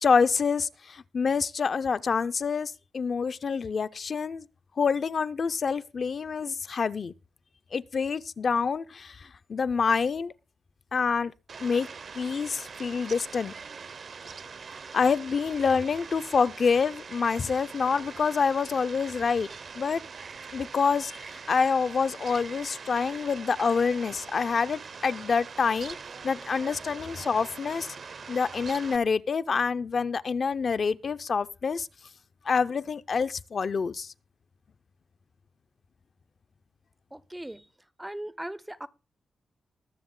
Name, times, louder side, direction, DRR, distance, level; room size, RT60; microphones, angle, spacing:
voice 1, 0.0-4.5 4.8-7.1 7.7-10.3 10.9-11.3 11.6-13.5 14.9-19.5 19.8-20.0 20.5-26.0 26.2-27.9 28.3-31.9 32.5-34.1, left 5 dB, 45° left, 0.5 m, -27 dB
Fowl, 11.5-29.0, right 5 dB, 50° right, 0.7 m, -43 dB
voice 2, 37.1-37.7 38.0-38.9, right 1 dB, 5° right, 0.5 m, -38 dB
20.0 x 7.2 x 3.7 m
wide cardioid pair, 140°, 0 cm